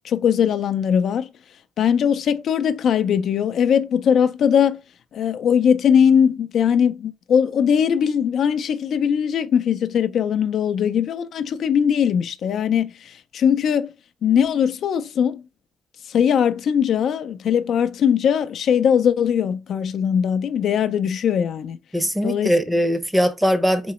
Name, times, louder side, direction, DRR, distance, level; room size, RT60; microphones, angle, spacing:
voice 1, 0.0-1.3 1.8-4.8 5.1-12.9 13.3-13.9 14.2-15.4 16.1-21.8 22.2-22.5, left 8 dB, 65° left, 0.3 m, -20 dB
voice 2, 21.9-23.9, equal, 5° right, 0.7 m, -20 dB
3.8 x 2.9 x 3.0 m
cardioid pair, 90°, 0 cm